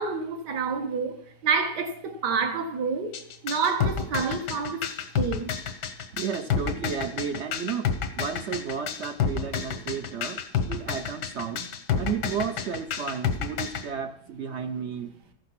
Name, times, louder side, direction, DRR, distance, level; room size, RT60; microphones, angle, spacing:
voice 1, 0.0-4.9 5.1-5.6, right 5 dB, 85° right, 1.8 m, -28 dB
sound 1, 3.1-13.8, left 7 dB, 85° left, 1.6 m, -29 dB
voice 2, 6.1-10.4 10.7-11.7 12.0-15.1, right 7 dB, 65° right, 0.7 m, -33 dB
14.0 x 6.5 x 6.0 m
omnidirectional pair, 1.8 m